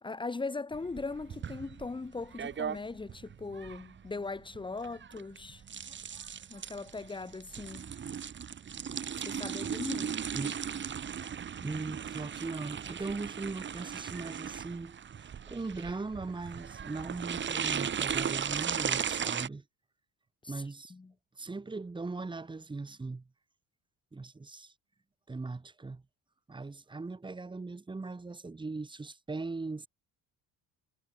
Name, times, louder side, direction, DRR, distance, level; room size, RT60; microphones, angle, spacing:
voice 1, 0.0-5.6 6.5-7.9 9.2-10.2 20.4-20.6 20.9-21.1, left 3 dB, 15° left, 3.0 m, -39 dB
sound 1, 0.7-19.5, right 8 dB, 35° right, 6.6 m, -37 dB
voice 2, 11.6-15.0 15.5-19.6 20.5-20.9 21.4-23.2 24.1-24.7 25.3-26.0 26.5-29.9, right 3 dB, 15° right, 5.7 m, -39 dB
cardioid pair, 145°, 34 cm